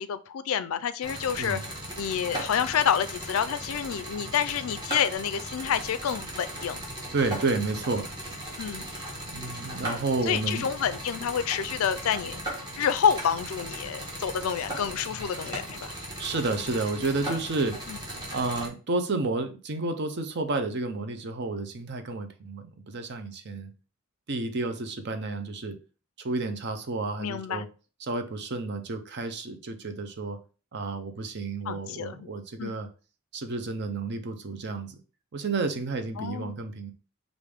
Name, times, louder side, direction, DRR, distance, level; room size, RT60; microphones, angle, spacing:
voice 1, 0.0-1.6 2.0-6.8 8.6-8.8 10.2-12.4 12.8-15.9 17.9-18.0 27.2-27.7 31.7-32.3 32.6-32.8 36.2-36.5, left 8 dB, 65° left, 13 dB, 0.3 m, -28 dB
sound 1, 1.0-18.7, right 1 dB, 20° right, 1.2 m, -37 dB
voice 2, 7.1-8.1 9.3-10.7 16.2-17.8 18.3-23.7 24.3-25.8 26.2-27.7 28.0-30.4 30.7-32.9 33.3-34.9 35.3-36.9, right 3 dB, 50° right, 7 dB, 0.6 m, -31 dB
5.0 x 2.6 x 3.4 m, 0.35 s
head